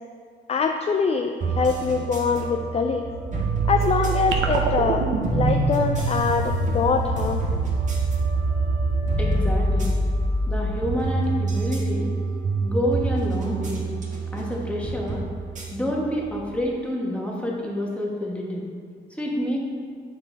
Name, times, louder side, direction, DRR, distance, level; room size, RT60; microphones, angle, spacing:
voice 1, 0.5-3.1 3.7-7.6, left 5 dB, 30° left, 4 dB, 0.5 m, -24 dB
sound 1, 1.4-16.7, right 3 dB, 40° right, 1.8 m, -27 dB
sound 2, 4.3-10.8, right 2 dB, 80° right, 0.9 m, -26 dB
voice 2, 9.2-9.9 10.5-12.2 12.6-13.9 14.3-15.2 15.7-18.7 19.1-19.6, equal, 5° left, -3 dB, 1.6 m, -28 dB
9.0 x 4.6 x 4.1 m, 2.1 s
cardioid pair, 90°, 20 cm